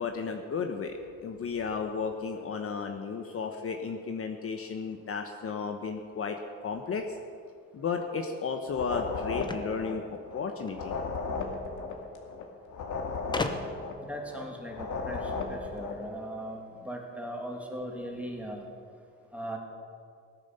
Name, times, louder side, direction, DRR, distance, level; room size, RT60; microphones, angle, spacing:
voice 1, 0.0-7.2 7.7-11.0, left 5 dB, 40° left, 4 dB, 1.2 m, -34 dB
sound 1, 8.7-16.1, left 4 dB, 60° left, 2.3 m, -35 dB
sound 2, 9.4-10.8 11.9-12.0 12.3-12.4 13.3-14.0, left 2 dB, 15° left, 1.0 m, -36 dB
voice 2, 14.0-18.7 19.3-19.6, right 1 dB, 5° right, 0 dB, 2.7 m, -39 dB
17.5 x 9.9 x 6.8 m, 2.2 s
cardioid pair, 115°, 34 cm